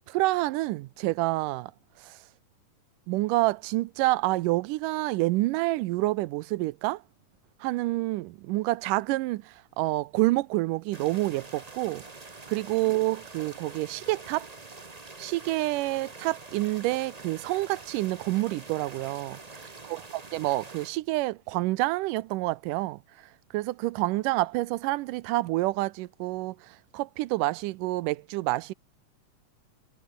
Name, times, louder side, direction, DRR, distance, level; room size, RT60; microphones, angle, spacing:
voice 1, 0.1-1.7 2.0-2.2 3.1-7.0 7.6-12.0 12.5-14.5 15.2-19.4 19.9-20.0 20.3-23.0 23.5-28.7, right 19 dB, 90° right, 2.3 m, -28 dB
sound 1, 10.9-20.9, right 3 dB, 55° right, 0.4 m, -46 dB
omnidirectional pair, 3.7 m